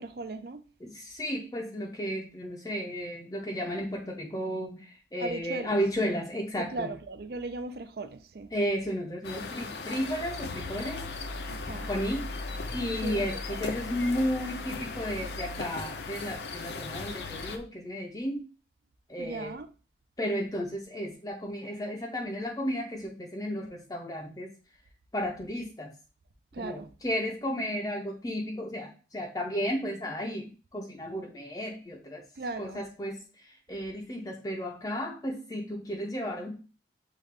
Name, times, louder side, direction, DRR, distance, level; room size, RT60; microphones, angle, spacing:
voice 1, 0.0-0.7 5.2-5.8 6.6-8.5 11.5-11.9 13.0-14.0 19.2-19.7 26.5-26.9 32.4-32.8, right 2 dB, 60° right, 0.5 m, -38 dB
voice 2, 0.8-7.0 8.5-11.1 11.9-12.3 12.7-18.5 19.1-19.6 20.2-24.5 25.1-25.9 26.6-32.2 32.6-36.5, equal, 20° left, 0.5 m, -33 dB
sound 1, 9.2-17.6, left 3 dB, 75° left, 0.6 m, -37 dB
6.6 x 2.4 x 3.3 m
head